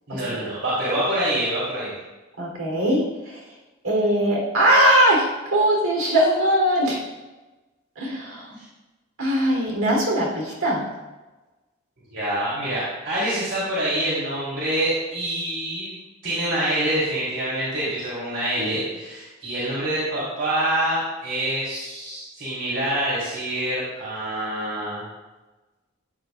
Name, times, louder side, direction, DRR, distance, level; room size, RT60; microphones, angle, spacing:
voice 1, 0.1-1.9 12.1-15.9 16.2-25.0, right 1 dB, 60° right, -9 dB, 3.7 m, -26 dB
voice 2, 2.4-3.0 3.8-7.0 8.0-8.4 9.2-10.9, right 1 dB, 85° right, -2 dB, 3.9 m, -20 dB
15.0 x 9.6 x 2.6 m, 1.2 s
head